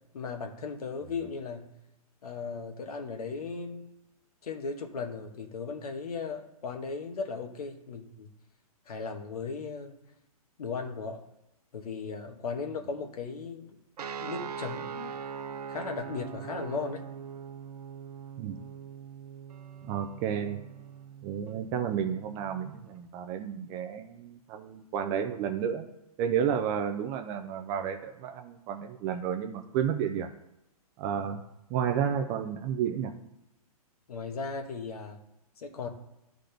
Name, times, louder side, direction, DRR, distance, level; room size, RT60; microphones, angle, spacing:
voice 1, 0.1-1.7 2.2-3.9 4.4-8.3 8.9-9.9 10.6-11.2 11.7-13.7 14.2-15.1 15.7-17.1 31.1-31.3 34.1-35.2 35.6-35.9, left 4 dB, 75° left, 4 dB, 1.2 m, -37 dB
sound 1, 14.0-22.9, right 7 dB, 85° right, 0.6 m, -42 dB
voice 2, 19.8-20.6 21.2-25.9 26.2-30.3 31.0-31.4 31.7-33.1, right 8 dB, 20° right, 7 dB, 0.4 m, -31 dB
10.0 x 3.9 x 3.4 m, 0.93 s
hypercardioid pair, 150°, 20 cm